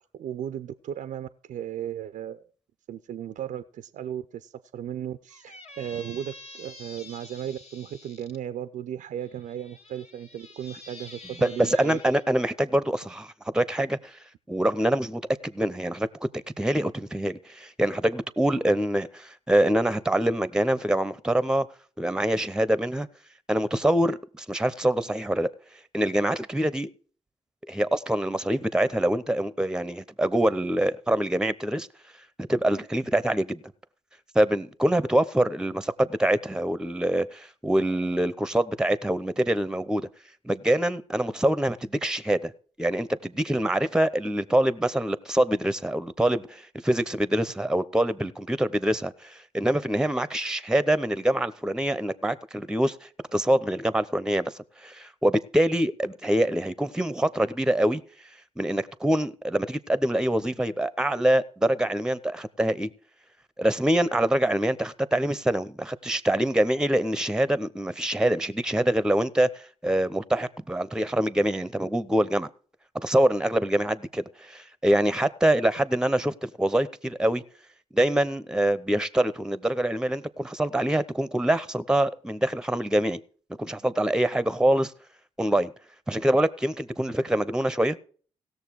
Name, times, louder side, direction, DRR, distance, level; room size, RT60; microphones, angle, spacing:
voice 1, 0.1-2.4 2.9-12.0, right 10 dB, 65° right, 0.5 m, -36 dB
Squeak, 5.3-8.4 9.2-12.3, left 2 dB, 50° left, 2.0 m, -48 dB
voice 2, 11.4-14.1 14.5-16.1 16.3-21.7 22.0-23.1 23.5-25.5 25.9-26.9 27.7-31.9 32.5-33.6 34.3-40.1 40.4-42.5 42.8-53.0 53.3-54.5 54.8-58.0 58.6-62.9 63.6-72.5 73.0-77.4 77.9-83.2 83.6-84.9 85.4-85.7 86.1-88.0, right 1 dB, 5° right, 0.8 m, -25 dB
17.0 x 6.7 x 4.7 m
supercardioid pair, 50°, 14 cm